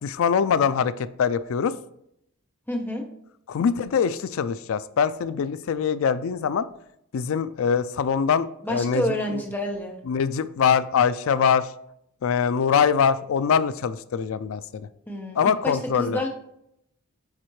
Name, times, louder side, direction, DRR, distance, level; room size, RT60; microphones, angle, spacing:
voice 1, 0.0-1.7 3.5-6.7 7.1-9.4 10.1-11.7 12.2-14.8 15.4-16.2, left 7 dB, 65° left, 14 dB, 0.3 m, -23 dB
voice 2, 2.7-3.1 8.6-10.0 15.1-16.3, left 1 dB, 10° left, 1 dB, 0.8 m, -28 dB
7.4 x 4.2 x 3.1 m, 0.76 s
head